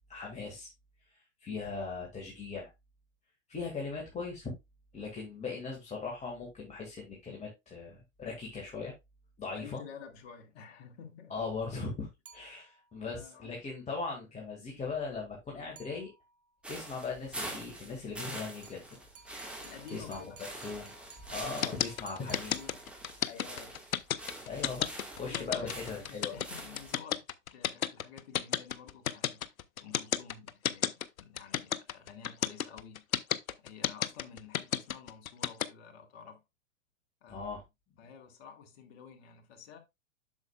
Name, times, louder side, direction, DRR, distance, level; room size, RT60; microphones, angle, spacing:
voice 1, 0.1-0.7 1.1-2.7 3.5-4.5 4.9-8.9 9.4-9.8 11.3-16.1 16.7-19.0 19.9-20.9 21.3-22.5 24.4-24.9 25.1-26.4 37.3-37.6, left 4 dB, 15° left, 1.9 m, -39 dB
voice 2, 9.5-11.4 13.1-13.6 19.6-20.4 22.0-22.9 23.2-23.8 25.2-27.2 27.5-29.5 29.8-33.0 33.6-36.4 37.2-37.6 38.0-39.8, left 7 dB, 50° left, 1.8 m, -50 dB
sound 1, 12.3-13.0 15.8-16.5 18.6-23.3, right 5 dB, 75° right, 1.6 m, -56 dB
sound 2, 16.6-27.0, right 1 dB, 5° right, 1.6 m, -45 dB
sound 3, 21.6-35.6, left 10 dB, 80° left, 0.7 m, -31 dB
8.1 x 6.6 x 2.3 m
hypercardioid pair, 110°, 41 cm